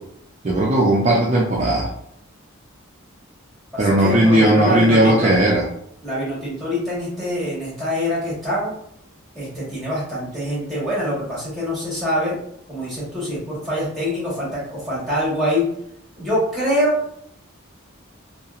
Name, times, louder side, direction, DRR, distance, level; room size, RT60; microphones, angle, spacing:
voice 1, 0.4-1.9 3.8-5.6, right 1 dB, 30° right, -4 dB, 0.4 m, -17 dB
voice 2, 3.7-5.3 6.0-8.7 9.3-12.3 12.7-15.6 16.2-17.0, equal, ahead, -8 dB, 1.3 m, -24 dB
2.7 x 2.4 x 2.4 m, 0.70 s
head